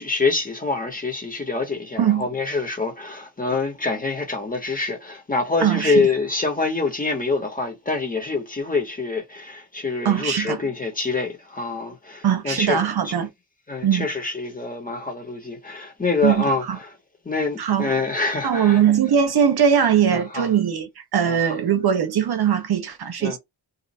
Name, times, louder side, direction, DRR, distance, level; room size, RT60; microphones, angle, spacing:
voice 1, 0.0-12.8 13.0-13.1 13.7-16.6 17.2-18.8 20.1-20.5 21.2-21.6 23.2-23.4, left 3 dB, 20° left, 0.8 m, -25 dB
voice 2, 5.6-6.0 10.0-10.6 12.2-13.3 13.8-14.1 16.2-16.8 17.6-17.9 18.4-23.4, right 8 dB, 60° right, 0.7 m, -20 dB
2.7 x 2.4 x 4.0 m
wide cardioid pair, 175°, 43 cm